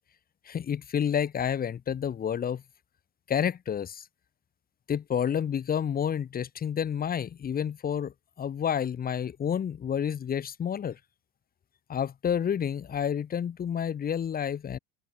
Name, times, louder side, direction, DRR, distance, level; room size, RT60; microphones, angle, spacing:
voice 1, 0.5-2.6 3.3-4.0 4.9-11.0 11.9-14.8, left 8 dB, 20° left, 1.0 m, -29 dB
supercardioid pair, 140°, 44 cm